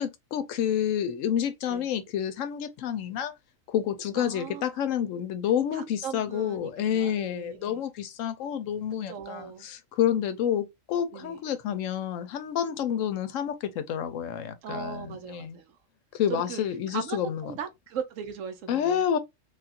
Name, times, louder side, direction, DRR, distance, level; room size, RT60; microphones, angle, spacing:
voice 1, 0.0-3.3 3.7-15.6 16.1-17.5 18.7-19.2, left 9 dB, 85° left, 1.0 m, -29 dB
voice 2, 4.2-4.9 5.7-7.8 9.1-9.7 11.1-11.4 14.6-15.8 16.3-16.6 16.9-19.0, right 8 dB, 85° right, 1.1 m, -38 dB
3.3 x 2.4 x 2.6 m
omnidirectional pair, 1.3 m